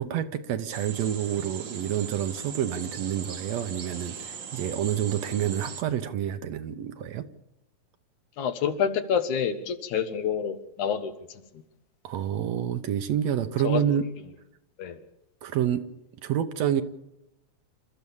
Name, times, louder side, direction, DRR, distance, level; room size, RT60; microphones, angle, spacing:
voice 1, 0.0-7.3 12.0-14.1 15.4-15.8 16.2-16.8, right 10 dB, 70° right, 9 dB, 2.0 m, -28 dB
sound 1, 0.7-5.8, right 7 dB, 50° right, 1.5 m, -39 dB
voice 2, 8.4-11.1 13.6-13.8 14.8-15.0, left 7 dB, 80° left, 8 dB, 2.8 m, -27 dB
28.5 x 13.5 x 7.2 m, 0.91 s
omnidirectional pair, 3.4 m